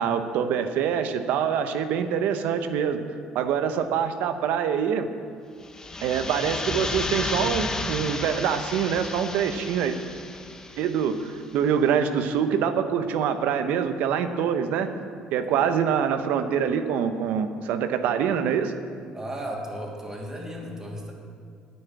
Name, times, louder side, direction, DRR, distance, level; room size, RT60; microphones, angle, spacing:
voice 1, 0.0-3.0 3.3-5.1 6.0-10.0 10.8-14.9 15.3-18.7, right 7 dB, 75° right, 8 dB, 1.0 m, -25 dB
sound 1, 5.6-11.3, left 2 dB, 20° left, 1.3 m, -33 dB
voice 2, 19.1-21.1, equal, 20° right, -2 dB, 3.1 m, -35 dB
10.0 x 9.3 x 8.4 m, 2.2 s
supercardioid pair, 80°, 3 cm